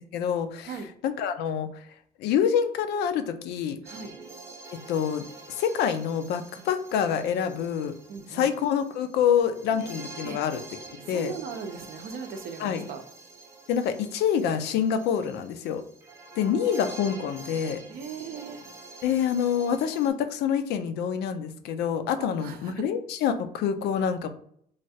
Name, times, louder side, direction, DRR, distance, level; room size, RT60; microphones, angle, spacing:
voice 1, 0.1-1.7 2.2-3.8 4.9-8.0 8.3-10.6 11.1-11.3 12.6-12.9 13.7-15.8 16.4-17.8 19.0-24.3, left 8 dB, 80° left, 9 dB, 0.4 m, -26 dB
sound 1, 3.8-20.1, right 3 dB, 15° right, 0.7 m, -46 dB
voice 2, 8.1-8.5 10.2-10.4 11.1-13.0 17.9-18.6 22.2-22.7, right 6 dB, 60° right, 7 dB, 0.5 m, -38 dB
3.2 x 2.3 x 2.6 m, 0.65 s
cardioid pair, 110°, 17 cm